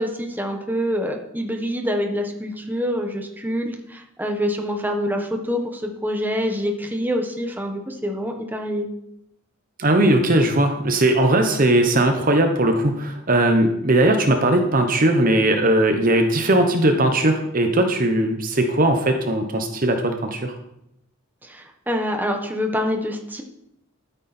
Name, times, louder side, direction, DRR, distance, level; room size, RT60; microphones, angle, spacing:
voice 1, 0.0-8.9 21.4-23.4, equal, 10° right, 3 dB, 1.4 m, -26 dB
voice 2, 9.8-20.5, right 1 dB, 40° right, 6 dB, 1.0 m, -19 dB
13.0 x 9.1 x 4.4 m, 0.80 s
head